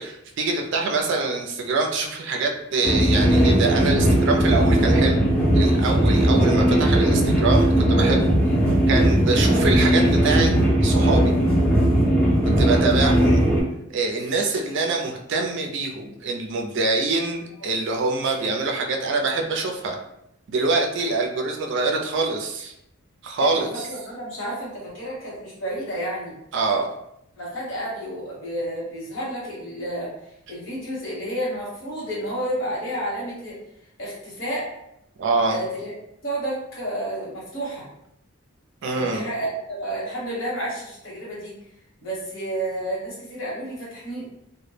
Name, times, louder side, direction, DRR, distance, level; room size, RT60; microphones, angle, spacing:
voice 1, 0.0-5.2 5.5-8.4 8.9-10.5 10.8-11.3 12.6-13.4 13.9-20.0 20.5-22.7 23.2-23.7 26.5-26.9 35.2-35.6 38.8-39.2, right 3 dB, 55° right, 2 dB, 0.4 m, -25 dB
sound 1, 2.8-13.6, right 1 dB, 5° left, 0.5 m, -18 dB
voice 2, 23.4-26.3 27.4-30.1 30.5-33.6 34.0-34.7 35.5-35.9 36.2-37.9 38.9-41.5 42.0-44.3, right 1 dB, 60° left, -5 dB, 1.1 m, -31 dB
2.1 x 2.0 x 3.1 m, 0.78 s
head